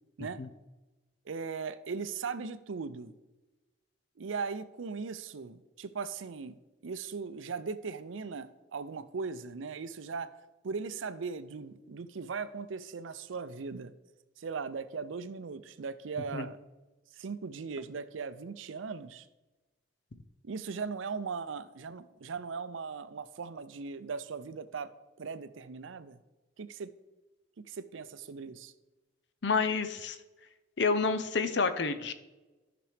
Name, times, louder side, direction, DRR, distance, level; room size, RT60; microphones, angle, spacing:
voice 1, 1.3-3.1 4.2-10.3 10.6-13.9 14.4-16.6 17.1-19.3 20.4-24.9 25.2-26.2 26.6-26.9 27.6-28.7, right 5 dB, 85° right, 13 dB, 0.5 m, -39 dB
voice 2, 29.4-30.2 30.8-32.1, left 4 dB, 60° left, 10 dB, 0.6 m, -29 dB
13.5 x 6.0 x 3.4 m, 1.1 s
head